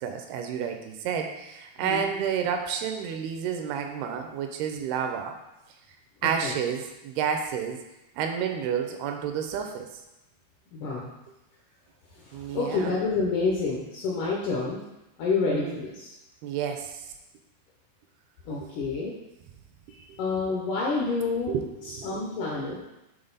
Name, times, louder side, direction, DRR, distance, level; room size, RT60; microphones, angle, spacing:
voice 1, 0.0-5.4 6.2-7.8 8.2-9.9 12.3-12.9 15.4-15.8 16.4-17.0 21.5-22.1, right 7 dB, 80° right, 5 dB, 2.5 m, -30 dB
voice 2, 10.7-11.1 12.2-14.8 15.2-16.1 18.5-19.2 19.9-21.6 21.8-22.8, left 4 dB, 75° left, -3 dB, 1.9 m, -28 dB
7.9 x 3.7 x 4.0 m, 0.95 s
omnidirectional pair, 4.6 m